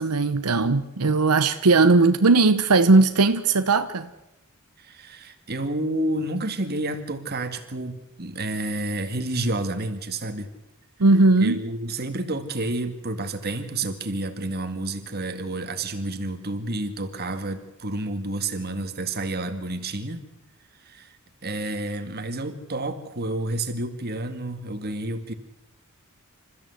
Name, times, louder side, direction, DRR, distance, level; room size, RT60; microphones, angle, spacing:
voice 1, 0.0-4.1 11.0-11.6, right 3 dB, 85° right, 0.9 m, -18 dB
voice 2, 4.8-10.5 11.4-20.2 20.8-21.2 21.4-25.3, right 2 dB, 45° right, 2.0 m, -30 dB
27.5 x 14.0 x 8.1 m
head